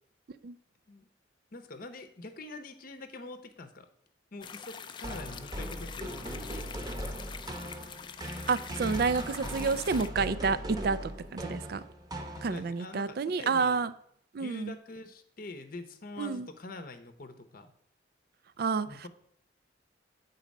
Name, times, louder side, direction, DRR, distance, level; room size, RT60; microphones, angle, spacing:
voice 1, 1.5-3.9 4.3-6.8 12.3-13.8 14.4-17.7 18.9-19.1, left 2 dB, 50° left, 8 dB, 0.7 m, -45 dB
sound 1, 4.4-10.1, left 6 dB, 25° left, 0.3 m, -45 dB
sound 2, 5.0-12.9, equal, 20° right, 0.9 m, -39 dB
voice 2, 8.5-11.8 12.4-13.9 14.3-14.7 16.2-16.5 18.6-18.9, right 4 dB, 55° right, 15 dB, 0.4 m, -29 dB
8.3 x 4.0 x 5.2 m, 0.65 s
head